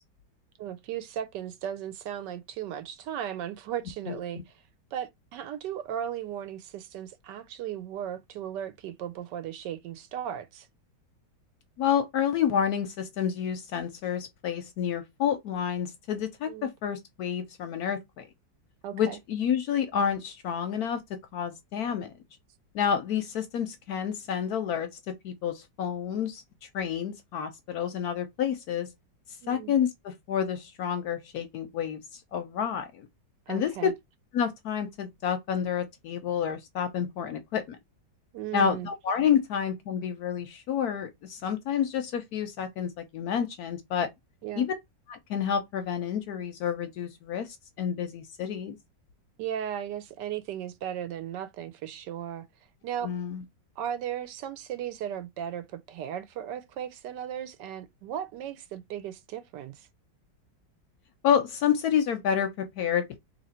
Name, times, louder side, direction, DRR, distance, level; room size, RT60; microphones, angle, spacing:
voice 1, 0.6-4.5 4.9-10.7 16.5-16.7 18.8-19.2 29.4-29.7 33.5-33.9 38.3-38.9 44.4-44.7 49.4-52.5 52.8-53.1 53.8-59.9, right 10 dB, 75° right, 1.2 m, -36 dB
voice 2, 11.8-18.3 18.9-22.1 22.7-28.9 29.5-33.1 33.5-33.9 34.3-37.8 38.5-44.1 44.6-44.7 45.1-48.8 53.0-53.4 61.2-63.2, left 8 dB, 70° left, 1.0 m, -29 dB
2.9 x 2.9 x 4.1 m
omnidirectional pair, 2.0 m